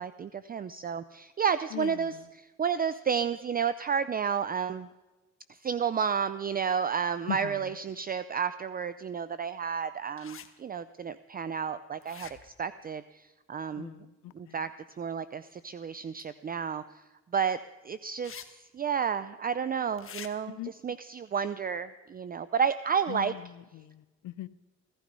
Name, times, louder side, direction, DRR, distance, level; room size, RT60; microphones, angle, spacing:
voice 1, 0.0-2.2 2.6-4.9 5.6-13.9 14.3-14.7 15.0-16.8 17.3-17.6 17.8-20.6 20.8-23.3, right 7 dB, 30° right, 14 dB, 0.5 m, -31 dB
voice 2, 1.7-2.3 7.3-7.7 13.8-14.6 20.5-20.7 23.1-24.5, left 15 dB, 80° left, 17 dB, 0.7 m, -40 dB
sound 1, 10.2-10.5 12.0-12.6 16.2-16.3 18.2-18.5 18.8-18.9 20.0-20.3, left 7 dB, 45° left, 1.3 m, -45 dB
16.0 x 14.5 x 5.3 m, 1.2 s
cardioid pair, 90°, 30 cm